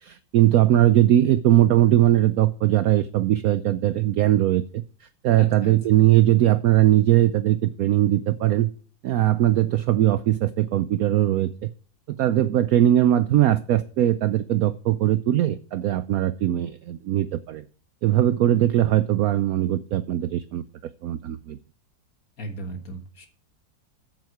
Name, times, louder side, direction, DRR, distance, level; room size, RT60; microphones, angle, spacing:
voice 1, 0.0-8.7 9.0-11.7 12.1-17.6 18.0-20.6 21.0-21.6, right 13 dB, 75° right, 13 dB, 0.8 m, -20 dB
voice 2, 5.4-6.0 22.4-23.3, right 1 dB, 50° left, 5 dB, 1.9 m, -36 dB
8.7 x 8.3 x 4.6 m, 0.43 s
omnidirectional pair, 2.1 m